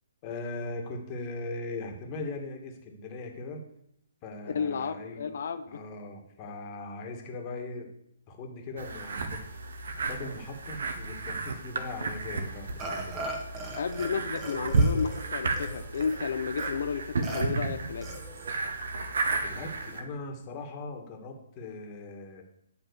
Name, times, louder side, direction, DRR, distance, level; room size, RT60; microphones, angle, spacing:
voice 1, 0.2-3.6 4.2-5.4 5.7-7.9 8.3-9.6 10.0-13.3 19.4-22.4, left 2 dB, 30° left, 3 dB, 2.2 m, -39 dB
voice 2, 4.5-5.8 13.7-18.1, left 6 dB, 55° left, 9 dB, 0.9 m, -32 dB
sound 1, 8.8-20.0, right 3 dB, 60° right, 1.4 m, -32 dB
Burping eructation, 12.8-14.1 14.4-16.2 16.6-16.7 17.2-17.4 18.0-18.5, right 2 dB, 20° right, 2.1 m, -39 dB
10.5 x 5.8 x 6.6 m, 0.72 s
figure-of-eight pair, 130°, 0 cm